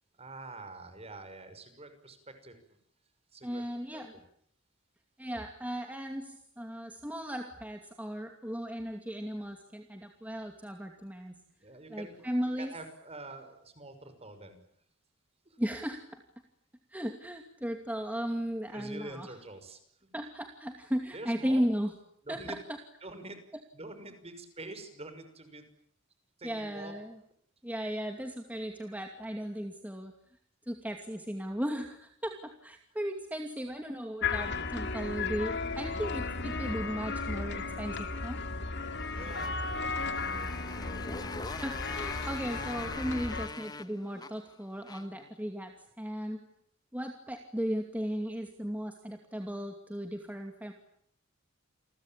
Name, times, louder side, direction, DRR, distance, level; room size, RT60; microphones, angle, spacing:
voice 1, 0.2-2.6 3.3-3.6 3.9-4.0 11.6-12.3 12.6-14.6 15.5-15.6 18.7-20.1 21.1-21.6 22.2-22.6 23.0-23.4 23.7-25.7 26.4-26.9 39.1-40.2, right 2 dB, 30° right, 9 dB, 5.9 m, -46 dB
voice 2, 3.4-4.1 5.2-11.3 11.9-12.7 15.6-16.2 16.9-19.3 20.1-21.9 22.3-22.6 26.4-27.1 27.6-30.1 30.7-38.4 41.6-46.4 46.9-50.7, equal, 10° right, 4 dB, 2.5 m, -36 dB
sound 1, 34.2-43.5, left 4 dB, 55° left, 2.6 m, -35 dB
Motorcycle, 38.9-45.3, left 3 dB, 20° left, 1.3 m, -44 dB
29.5 x 22.5 x 9.0 m, 0.68 s
head